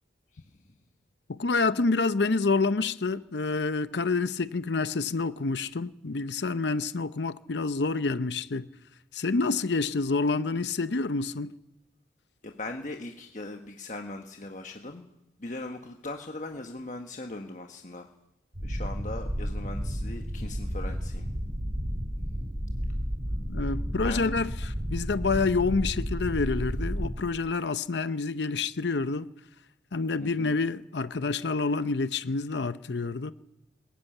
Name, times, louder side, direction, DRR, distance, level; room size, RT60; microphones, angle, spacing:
voice 1, 1.3-8.7 9.1-11.5 23.5-29.3 29.9-33.3, left 3 dB, 75° left, 0.7 m, -28 dB
voice 2, 12.4-15.1 15.4-18.1 18.6-21.3 24.0-24.3 30.2-30.6, left 2 dB, 40° left, 1.4 m, -39 dB
sound 1, 18.5-27.2, equal, 65° right, 4.0 m, -32 dB
21.5 x 15.5 x 9.1 m
head